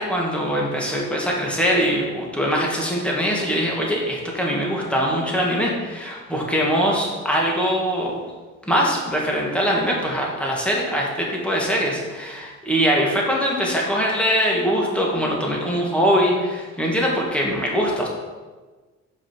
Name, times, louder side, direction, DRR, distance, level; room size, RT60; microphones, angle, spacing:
voice 1, 0.0-8.2 8.7-18.1, equal, 5° left, -3 dB, 2.0 m, -22 dB
5.5 x 4.9 x 6.2 m, 1.3 s
cardioid pair, 90°, 30 cm